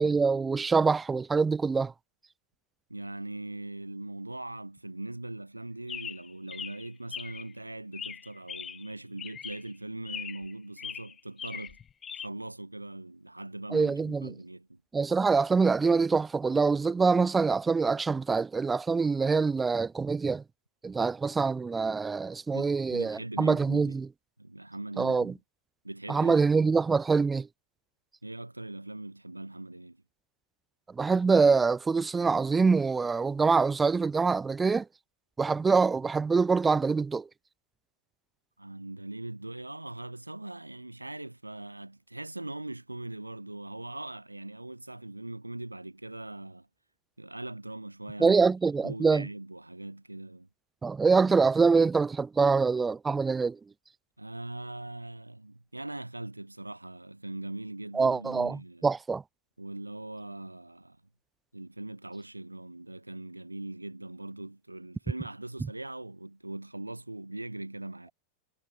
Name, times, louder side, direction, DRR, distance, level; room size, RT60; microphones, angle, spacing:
voice 1, 0.0-1.9 13.7-14.3 14.9-20.4 20.8-24.1 25.0-25.3 26.1-27.5 30.9-34.9 35.4-37.3 48.2-49.3 50.8-53.6 57.9-59.2, right 4 dB, 15° right, 0.3 m, -25 dB
voice 2, 2.9-11.8 12.1-14.8 22.5-23.9 24.4-25.4 25.8-26.4 28.2-30.0 38.6-46.7 47.2-48.4 48.8-50.5 54.2-58.9 59.6-61.0 61.5-68.1, right 2 dB, 85° right, 0.6 m, -41 dB
Chirp tweet, 5.9-7.5 7.9-8.9 9.2-9.7 10.0-10.5 10.8-12.3, left 8 dB, 20° left, 1.2 m, -41 dB
figure-of-eight pair, 90°, 0 cm